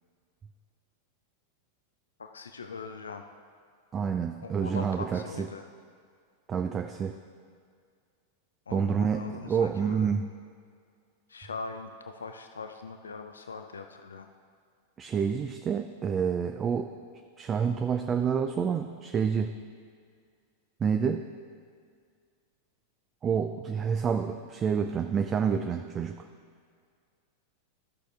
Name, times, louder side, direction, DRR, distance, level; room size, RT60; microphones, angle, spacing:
voice 1, 2.2-3.3 4.4-5.7 8.7-10.1 11.3-14.3, left 4 dB, 70° left, 7 dB, 0.4 m, -41 dB
voice 2, 3.9-5.5 6.5-7.2 8.7-10.2 15.0-16.9 17.4-19.6 20.8-21.3 23.2-26.3, right 6 dB, 25° right, 7 dB, 0.4 m, -28 dB
14.0 x 6.4 x 3.3 m, 2.1 s
figure-of-eight pair, 90°, 0 cm